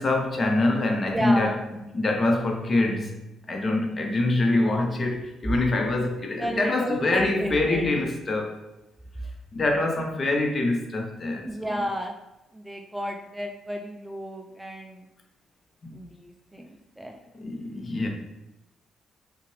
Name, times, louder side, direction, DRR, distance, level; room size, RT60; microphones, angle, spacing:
voice 1, 0.0-3.2 3.5-8.6 9.5-11.9 15.8-16.0 17.3-18.1, left 2 dB, 35° left, 0.9 m, -25 dB
voice 2, 1.1-1.6 6.4-7.9 11.4-12.1 12.5-15.0 15.9-16.1 16.5-17.2, equal, 5° right, 0.4 m, -32 dB
5.6 x 2.5 x 3.2 m
cardioid pair, 90°, 0 cm